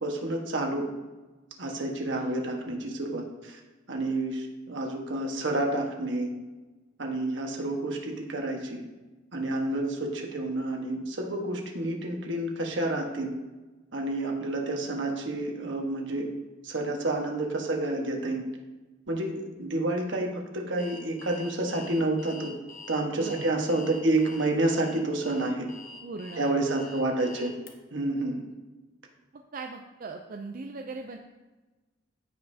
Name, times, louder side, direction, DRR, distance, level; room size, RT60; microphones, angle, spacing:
voice 1, 0.0-0.9 1.6-3.6 3.9-6.3 7.0-8.8 9.3-13.3 13.9-16.3 16.6-18.4 19.1-22.5 22.9-25.7 26.4-27.5 27.9-28.4, right 2 dB, 70° right, 1 dB, 1.3 m, -29 dB
voice 2, 2.2-2.5 9.7-9.8 23.2-23.5 26.0-27.2 28.2-28.3 29.3-31.2, right 3 dB, 45° right, 3 dB, 0.5 m, -40 dB
Alarm, 20.8-27.7, left 3 dB, 45° left, 1.0 m, -46 dB
15.0 x 5.4 x 2.8 m, 1.2 s
head